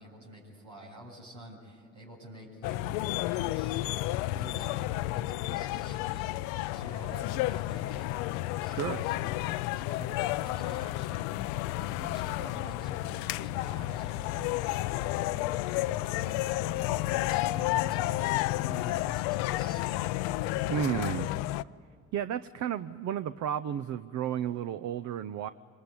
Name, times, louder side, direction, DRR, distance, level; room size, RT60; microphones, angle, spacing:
voice 1, 0.0-3.8 4.1-4.8 5.1-11.3 11.7-20.1 20.4-21.0, equal, 85° right, -3 dB, 7.5 m, -48 dB
sound 1, 2.6-21.6, left 16 dB, 85° left, 0.5 m, -31 dB
voice 2, 8.7-9.0 20.7-21.3 22.1-25.5, right 9 dB, 65° right, 13 dB, 0.7 m, -32 dB
25.0 x 21.0 x 9.6 m, 2.3 s
supercardioid pair, 60°, 31 cm